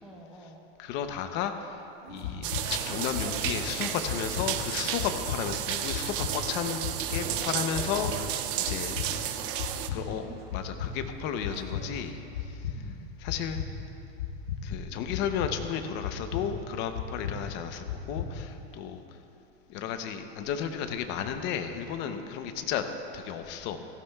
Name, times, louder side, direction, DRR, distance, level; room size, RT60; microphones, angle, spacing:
voice 1, 0.0-0.7 2.2-2.7 8.6-10.4 12.7-13.1, equal, ahead, -2 dB, 1.1 m, -50 dB
voice 2, 0.8-9.0 9.9-10.2 10.5-12.8 13.2-13.6 14.6-19.0 19.7-22.8 23.1-23.8, left 8 dB, 35° left, 7 dB, 0.7 m, -33 dB
sound 1, 2.0-8.5 10.0-12.1, right 4 dB, 30° right, 1.0 m, -47 dB
sound 2, 2.1-18.7, left 6 dB, 70° left, 1.2 m, -37 dB
sound 3, 2.4-9.9, right 11 dB, 55° right, 0.7 m, -33 dB
16.5 x 15.0 x 2.3 m, 3.0 s
supercardioid pair, 155°, 32 cm